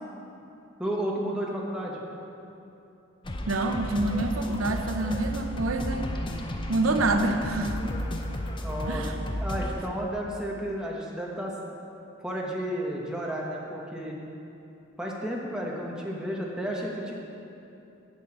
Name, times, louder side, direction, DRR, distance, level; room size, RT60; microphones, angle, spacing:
voice 1, 0.8-2.0 8.6-9.0 9.4-11.5 12.2-14.2 15.0-17.1, equal, 5° right, -3 dB, 1.1 m, -32 dB
sound 1, 3.2-9.7, left 1 dB, 25° left, 0.6 m, -33 dB
voice 2, 3.5-6.1 6.7-7.9 8.9-9.3, right 2 dB, 90° right, 6 dB, 0.7 m, -27 dB
9.8 x 5.4 x 7.6 m, 2.8 s
head